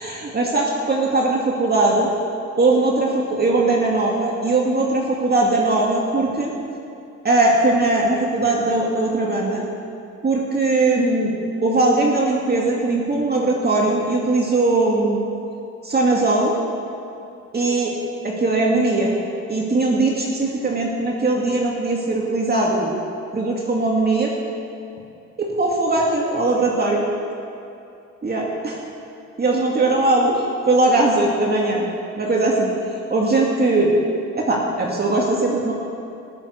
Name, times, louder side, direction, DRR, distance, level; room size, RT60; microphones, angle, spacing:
voice 1, 0.0-2.1 2.6-6.5 7.2-9.6 10.2-11.3 11.6-15.2 15.8-16.5 17.5-17.9 18.2-19.1 19.5-22.9 23.3-24.3 25.4-27.0 28.2-28.8 29.4-31.9 32.2-32.7 33.1-33.9 34.3-35.7, right 2 dB, 30° right, -2 dB, 2.4 m, -20 dB
19.5 x 7.5 x 8.5 m, 2.6 s
cardioid pair, 90°, 30 cm